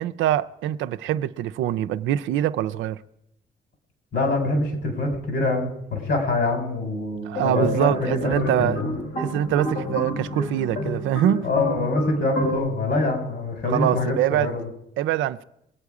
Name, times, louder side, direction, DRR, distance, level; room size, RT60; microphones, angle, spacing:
voice 1, 0.0-3.0 7.2-8.8 9.2-11.5 13.7-14.5 15.0-15.4, right 12 dB, 85° right, 0.5 m, -24 dB
voice 2, 4.1-9.0 11.4-14.6, left 2 dB, 65° left, 4.1 m, -25 dB
sound 1, 7.3-12.6, left 1 dB, 85° left, 5.3 m, -29 dB
21.5 x 8.3 x 4.9 m
cardioid pair, 65°, 19 cm